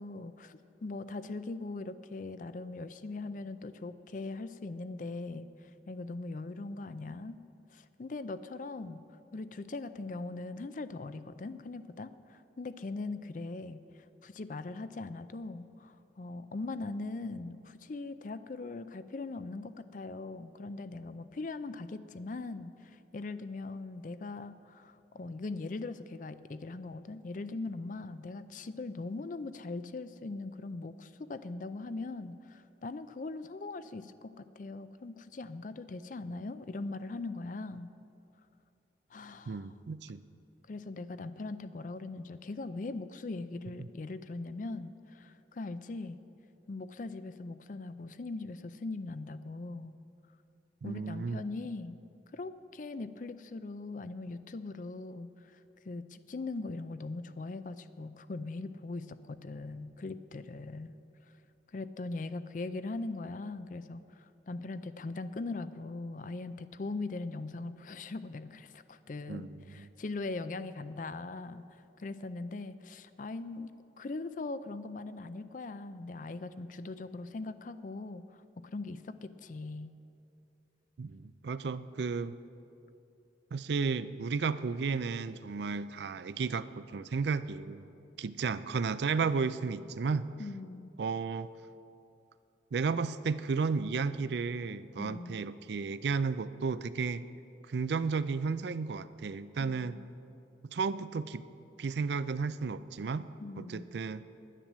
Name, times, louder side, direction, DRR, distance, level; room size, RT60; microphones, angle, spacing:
voice 1, 0.0-5.5 5.9-7.4 7.7-9.0 9.3-13.8 14.2-37.9 39.1-39.7 40.7-46.2 46.7-50.0 50.8-52.0 52.3-55.6 55.8-61.0 61.7-71.7 72.0-79.9 90.4-90.9 95.0-95.4 99.6-100.1 103.4-103.9, left 3 dB, 45° left, 13 dB, 0.4 m, -40 dB
voice 2, 39.5-40.2 43.8-43.9 50.8-51.4 69.3-69.9 81.0-82.3 83.5-87.8 88.2-90.3 91.0-91.5 92.7-97.2 97.7-100.0 100.7-101.4 101.8-103.3 103.6-104.2, right 5 dB, 70° right, 14 dB, 0.4 m, -33 dB
10.5 x 10.0 x 7.4 m, 2.7 s
head